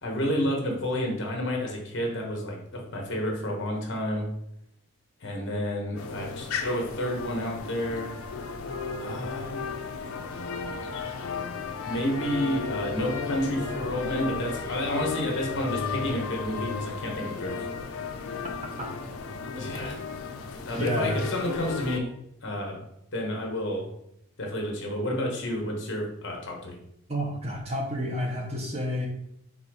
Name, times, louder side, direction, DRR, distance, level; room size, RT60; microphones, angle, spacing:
voice 1, 0.0-4.3 5.2-8.1 9.0-9.6 10.8-11.1 11.8-17.7 19.6-20.0 20.6-22.1 22.4-22.8 23.1-23.9 24.4-26.7, equal, 55° left, 0 dB, 1.0 m, -30 dB
sound 1, 6.0-22.0, left 4 dB, 70° left, 0.4 m, -34 dB
voice 2, 20.7-21.3 27.1-29.1, equal, 30° right, 1 dB, 0.6 m, -30 dB
4.1 x 2.3 x 4.7 m, 0.78 s
head